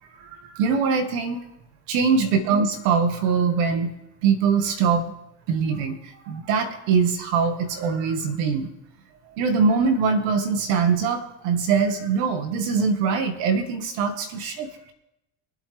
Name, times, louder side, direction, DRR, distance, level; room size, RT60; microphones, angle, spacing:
voice 1, 0.2-1.4 1.9-3.9 4.2-5.1 5.5-8.7 9.3-14.7, right 5 dB, 80° right, 7 dB, 2.0 m, -23 dB
23.5 x 8.4 x 3.5 m, 0.88 s
supercardioid pair, 80°, 46 cm